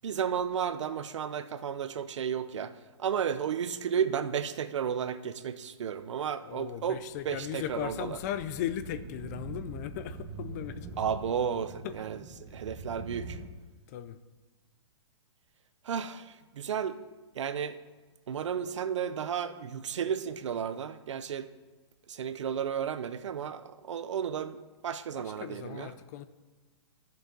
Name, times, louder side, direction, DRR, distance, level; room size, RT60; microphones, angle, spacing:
voice 1, 0.0-2.7 3.0-8.1 11.0-12.2 12.5-13.4 15.8-17.0 17.3-17.8 18.3-21.5 22.1-24.6 24.8-25.9, right 8 dB, 80° right, 13 dB, 0.7 m, -33 dB
voice 2, 6.4-11.0 11.8-12.1 13.9-14.2 25.1-26.3, left 11 dB, 35° left, 12 dB, 0.5 m, -37 dB
sound 1, 6.7-13.5, right 3 dB, 25° right, 1.2 m, -44 dB
13.5 x 7.0 x 3.9 m, 1.3 s
hypercardioid pair, 150°, 15 cm